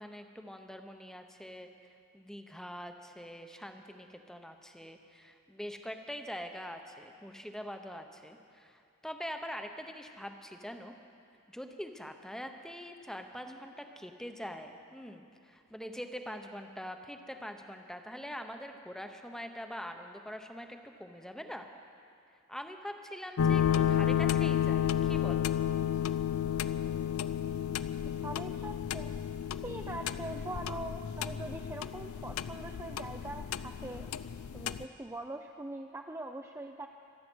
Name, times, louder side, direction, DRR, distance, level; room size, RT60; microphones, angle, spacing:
voice 1, 0.0-1.7 2.1-10.9 11.5-21.7 22.5-25.5, equal, ahead, 5 dB, 0.8 m, -44 dB
sound 1, 23.4-34.8, left 9 dB, 80° left, 0.4 m, -32 dB
voice 2, 28.2-29.1 29.6-34.1 34.5-36.9, right 2 dB, 15° right, 3 dB, 0.4 m, -42 dB
25.5 x 8.6 x 6.2 m, 2.4 s
head